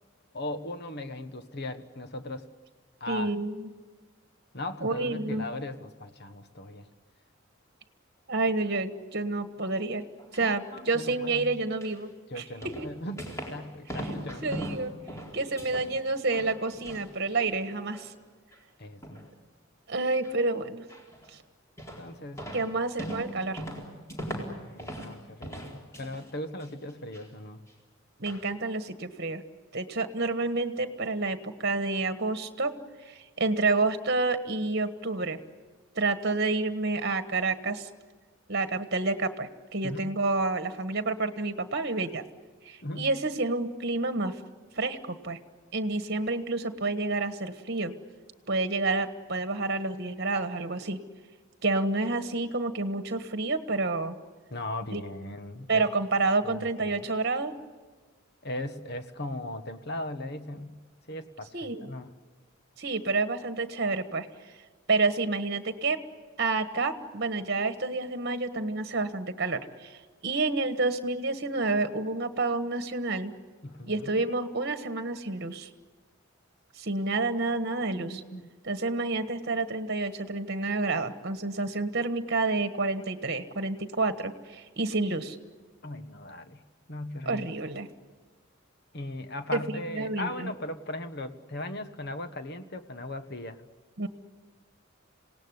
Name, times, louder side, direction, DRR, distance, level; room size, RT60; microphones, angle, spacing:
voice 1, 0.3-2.5 3.0-3.3 4.5-6.9 10.4-11.5 12.3-14.6 18.8-19.2 22.0-22.7 24.7-27.7 39.8-40.1 42.8-43.1 54.5-55.9 56.4-57.0 58.4-60.7 61.1-62.1 73.6-74.2 77.9-78.5 85.8-86.6 86.9-87.5 88.9-93.6, left 1 dB, 55° left, 9 dB, 1.5 m, -38 dB
voice 2, 3.1-3.7 4.8-5.5 8.3-10.0 10.3-12.1 12.4-12.9 14.4-14.9 15.3-18.1 19.9-20.8 22.5-23.6 28.2-29.4 29.7-32.7 33.0-35.4 35.9-37.9 38.5-42.2 42.6-44.4 44.8-45.4 45.7-47.9 48.5-51.0 51.6-54.1 54.9-55.0 55.7-57.5 61.5-61.9 62.8-64.3 64.9-66.0 66.4-73.3 73.9-75.7 76.8-78.2 78.6-85.4 87.2-87.9 89.5-90.5 94.0-94.1, right 3 dB, 50° right, 9 dB, 1.4 m, -29 dB
sound 1, 10.0-10.5 11.8-12.0 12.6-13.6 13.9-15.9 16.2-17.1 17.4-18.1 18.5-18.6 19.0-19.3 20.2-20.4 20.9-21.3 21.8-22.1 22.4-25.2 25.4-26.3 26.6-27.2 27.7-27.8 28.3-28.4, equal, 15° left, 4.2 m, -39 dB
27.0 x 18.5 x 9.8 m, 1.4 s
head